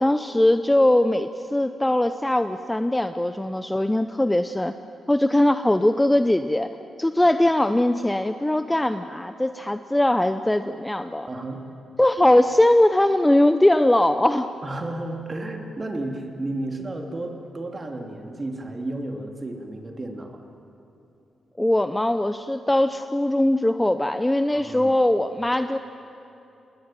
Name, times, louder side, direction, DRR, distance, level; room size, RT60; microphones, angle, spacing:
voice 1, 0.0-4.7 5.1-6.7 7.0-11.3 12.0-14.5 21.6-25.8, left 1 dB, 10° left, 9 dB, 0.7 m, -20 dB
voice 2, 11.3-11.6 14.6-20.5 24.5-24.9, right 2 dB, 25° right, 3 dB, 3.0 m, -32 dB
27.0 x 20.5 x 9.1 m, 2.9 s
cardioid pair, 120°, 0 cm